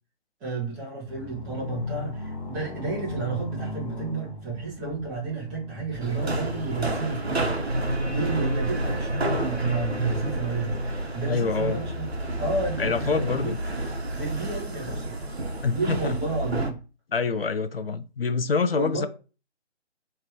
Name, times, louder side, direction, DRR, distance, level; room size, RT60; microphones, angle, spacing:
voice 1, 0.4-7.5 8.0-10.8 11.1-12.1 12.4-13.5 14.1-15.2 15.7-16.8 18.7-19.1, right 4 dB, 10° right, 1.2 m, -31 dB
sound 1, 1.1-6.9, left 3 dB, 30° left, 1.2 m, -37 dB
sound 2, 6.0-16.7, right 2 dB, 65° right, 1.2 m, -31 dB
sound 3, 7.7-13.0, equal, 80° right, 1.3 m, -31 dB
voice 2, 11.3-11.8 12.8-13.6 15.6-16.2 17.1-19.1, left 4 dB, 55° left, 0.6 m, -26 dB
3.3 x 3.2 x 4.6 m
figure-of-eight pair, 145°, 34 cm